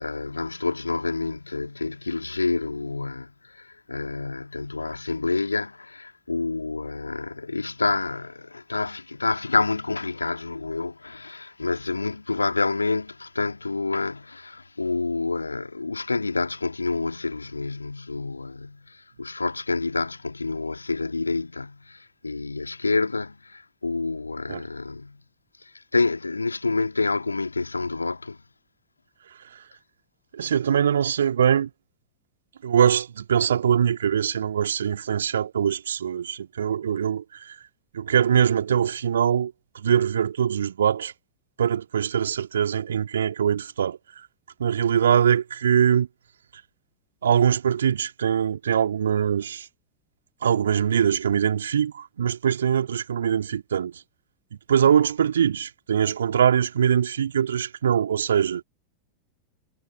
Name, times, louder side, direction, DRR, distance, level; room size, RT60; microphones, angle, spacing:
voice 1, 0.0-25.2 25.6-28.4, left 3 dB, 80° left, 2.4 m, -28 dB
voice 2, 30.3-31.7 32.6-37.6 37.9-41.1 41.6-44.3 44.6-46.1 46.5-46.6 47.2-49.7 50.4-54.0 54.7-58.6, right 8 dB, 65° right, 2.7 m, -22 dB
figure-of-eight pair, 90°, 0 cm